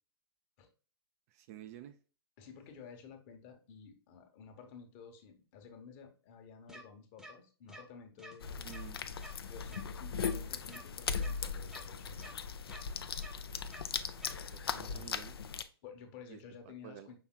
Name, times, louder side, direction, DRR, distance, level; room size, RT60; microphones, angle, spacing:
voice 1, 1.3-2.0 8.6-9.0 14.5-15.4 16.3-16.4 16.6-17.1, right 12 dB, 35° right, 9 dB, 0.4 m, -50 dB
voice 2, 2.4-8.7 9.5-12.3 14.7-15.2 15.8-17.2, left 6 dB, 35° left, 5 dB, 1.1 m, -53 dB
sound 1, 6.7-6.8 7.2-7.3 7.7-7.8 8.2-8.3 8.7-8.8 9.2-9.3 9.7-9.8 10.2-10.3 10.7-10.8 11.2-11.3 11.7-11.8 12.2-12.3 12.7-12.8 13.2-13.3 13.7-13.8 14.2-14.3, right 1 dB, 5° right, 0.8 m, -50 dB
sound 2, 8.4-15.6, left 6 dB, 70° left, 0.5 m, -39 dB
5.8 x 3.5 x 2.2 m, 0.37 s
figure-of-eight pair, 115°, 13 cm